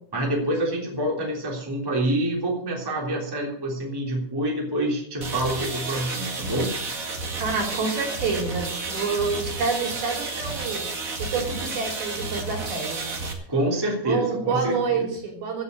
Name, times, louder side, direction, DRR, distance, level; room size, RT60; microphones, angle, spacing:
voice 1, 0.1-6.7 13.5-15.1, right 1 dB, 5° right, -1 dB, 2.7 m, -27 dB
sound 1, 5.2-13.3, right 3 dB, 80° right, 0.7 m, -31 dB
voice 2, 7.4-10.9 11.2-13.1 14.0-15.6, right 5 dB, 60° right, 3 dB, 4.5 m, -28 dB
15.5 x 7.3 x 8.3 m, 0.66 s
omnidirectional pair, 5.1 m